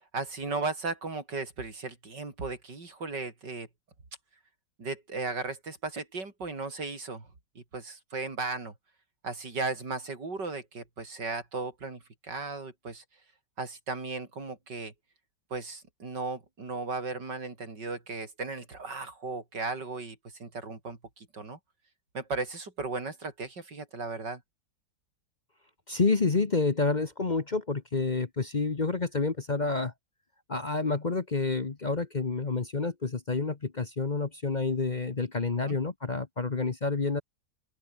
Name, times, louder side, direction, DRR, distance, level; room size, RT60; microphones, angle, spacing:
voice 1, 0.1-3.7 4.8-7.3 7.5-8.7 9.2-13.0 13.6-14.9 15.5-21.6 22.1-24.4 35.7-35.8, right 3 dB, 90° right, 5.0 m, -36 dB
voice 2, 25.9-29.9 30.5-37.2, left 3 dB, 30° left, 1.1 m, -29 dB
open air
omnidirectional pair, 1.8 m